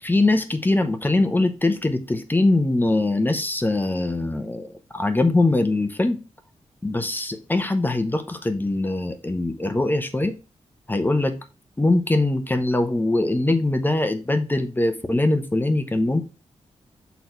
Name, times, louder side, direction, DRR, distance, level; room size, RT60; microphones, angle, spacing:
voice 1, 0.0-6.2 6.8-10.4 10.9-11.4 11.8-16.2, left 2 dB, 15° left, 0.8 m, -22 dB
6.2 x 4.1 x 4.5 m
wide cardioid pair, 110°, 12 cm